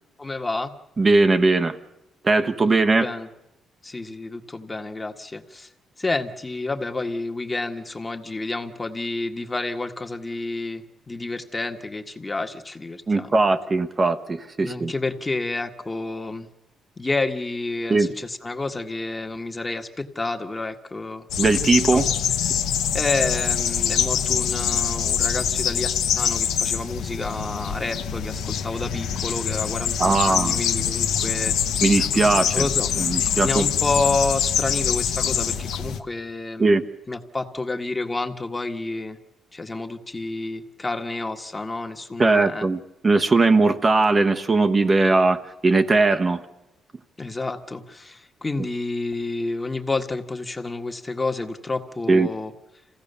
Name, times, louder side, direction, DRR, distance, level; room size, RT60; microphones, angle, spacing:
voice 1, 0.2-0.7 2.7-3.3 3.8-5.7 6.0-13.3 14.6-16.5 17.0-21.3 21.9-22.0 22.9-31.5 32.5-32.9 33.4-39.2 39.5-42.7 47.2-52.5, left 3 dB, 20° left, 4 dB, 1.6 m, -29 dB
voice 2, 1.0-1.8 2.2-3.1 13.1-14.9 17.9-18.1 21.4-22.1 30.0-30.6 31.8-32.7 33.0-33.6 36.6-36.8 42.2-46.4 52.1-52.3, right 3 dB, 30° right, 7 dB, 1.1 m, -19 dB
sound 1, 21.3-36.0, left 8 dB, 85° left, 1.3 m, -24 dB
27.0 x 16.0 x 6.9 m, 0.97 s
cardioid pair, 90°, 0 cm